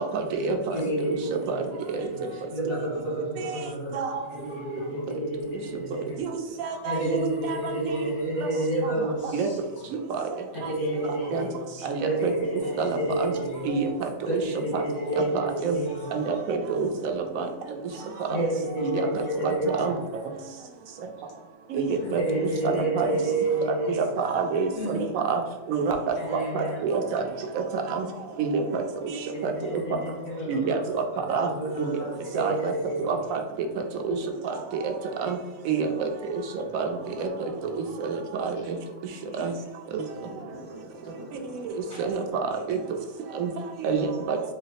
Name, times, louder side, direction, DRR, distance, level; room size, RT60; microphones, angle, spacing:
voice 1, 0.1-0.8 1.1-1.2 1.5-1.6 3.9-4.2 6.2-7.9 9.3-9.5 10.1-10.3 10.6-10.7 11.3-11.5 11.8-12.3 12.8-13.3 13.7-14.4 14.7-14.8 15.1-15.8 16.1-17.5 18.3-18.4 18.8-19.1 19.4-19.9 21.7-23.1 24.2-25.4 25.7-27.2 27.5-28.1 28.4-29.5 30.5-31.0 31.3-31.5 31.8-32.0 32.3-32.7 33.0-33.4 34.0-34.2 34.4-34.5 34.8-34.9 35.2-35.4 35.7-36.4 36.7-37.3 38.0-38.8 39.4-39.5 39.9-40.0 41.6-41.7 42.0-42.2 42.7-42.8 43.3-43.5 43.8-44.4, right 5 dB, 90° right, 1.0 m, -28 dB
voice 2, 0.7-4.0 4.3-6.2 6.7-9.6 10.5-13.8 14.2-16.1 18.0-19.9 22.0-24.1 24.7-25.0 26.2-26.8 29.3-33.2 41.9-42.1, right 1 dB, 85° left, 1.6 m, -30 dB
voice 3, 36.9-37.7 40.1-42.2, right 1 dB, 55° left, 2.0 m, -46 dB
4.0 x 2.0 x 4.0 m
omnidirectional pair, 1.4 m